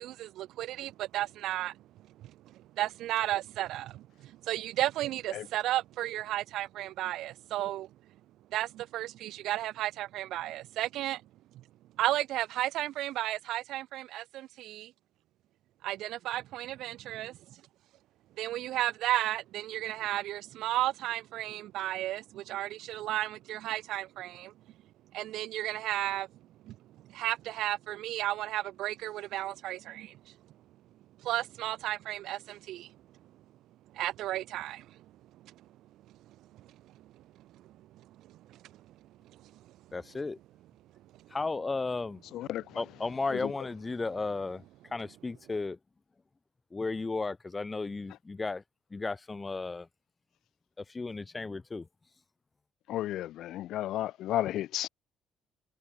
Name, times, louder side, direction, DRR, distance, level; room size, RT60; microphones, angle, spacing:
voice 1, 0.0-1.7 2.8-4.0 4.5-7.9 8.5-11.2 12.0-14.9 15.8-17.3 18.4-24.5 25.1-26.3 26.7-26.8 27.1-30.1 31.2-32.9 34.0-34.8, right 14 dB, 75° right, 7.3 m, -33 dB
voice 2, 39.9-40.4 41.3-42.2 42.7-44.6 44.9-45.8 46.7-48.6 48.9-49.9 50.8-51.9, left 3 dB, 25° left, 6.7 m, -34 dB
voice 3, 52.9-54.9, left 13 dB, 75° left, 1.0 m, -32 dB
cardioid pair, 85°, 0 cm